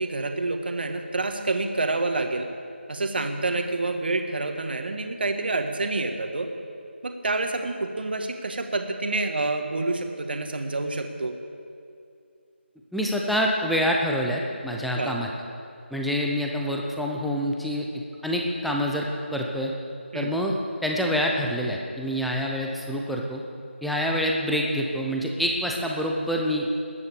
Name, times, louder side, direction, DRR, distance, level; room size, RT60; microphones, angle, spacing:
voice 1, 0.0-2.5 2.9-6.5 7.0-11.3 14.9-15.2 20.1-20.3, right 2 dB, 50° right, 5 dB, 1.7 m, -28 dB
voice 2, 12.9-15.3 15.9-17.9 18.2-19.7 20.1-23.4 23.8-26.7, equal, ahead, -1 dB, 0.5 m, -26 dB
20.5 x 9.8 x 6.9 m, 2.4 s
figure-of-eight pair, 165°, 7 cm